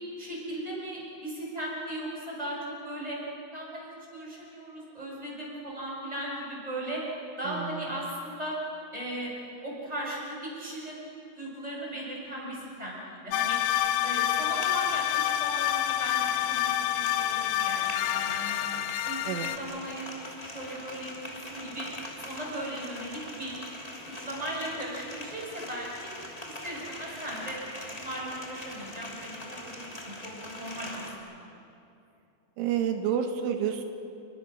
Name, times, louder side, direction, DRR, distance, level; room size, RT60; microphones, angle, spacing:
voice 1, 0.2-2.6 2.8-3.2 3.5-7.0 7.4-8.6 8.9-9.3 9.6-11.0 11.4-13.6 14.0-18.6 18.9-21.9 22.2-23.6 24.0-26.1 26.6-27.6 27.9-31.5, right 1 dB, 5° right, -4 dB, 7.0 m, -37 dB
voice 2, 7.5-8.0 19.3-19.5 32.6-33.9, right 9 dB, 85° right, 6 dB, 3.7 m, -29 dB
sound 1, 13.3-19.6, left 12 dB, 80° left, 2.3 m, -28 dB
sound 2, 13.6-31.1, left 1 dB, 10° left, 1.8 m, -42 dB
30.0 x 23.0 x 6.4 m, 2.7 s
omnidirectional pair, 5.5 m